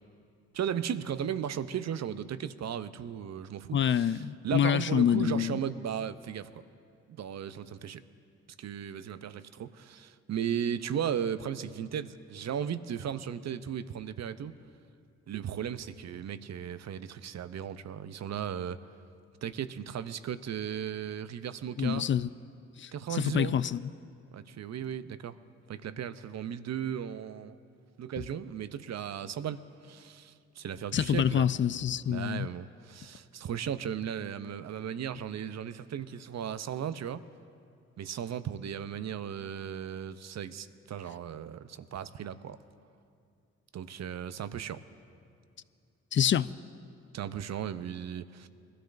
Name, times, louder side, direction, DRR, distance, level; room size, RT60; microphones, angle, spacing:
voice 1, 0.5-6.5 7.1-8.0 8.6-14.5 15.3-18.8 19.4-22.1 22.9-23.6 24.3-25.4 25.7-27.6 28.0-31.5 32.1-37.2 38.0-42.6 43.7-44.8 47.1-48.5, right 9 dB, 55° right, 13 dB, 0.7 m, -36 dB
voice 2, 3.7-5.6 21.8-22.3 22.8-23.8 30.9-32.5 46.1-46.5, left 9 dB, 35° left, 17 dB, 0.4 m, -27 dB
22.0 x 13.5 x 2.6 m, 2.4 s
supercardioid pair, 45°, 33 cm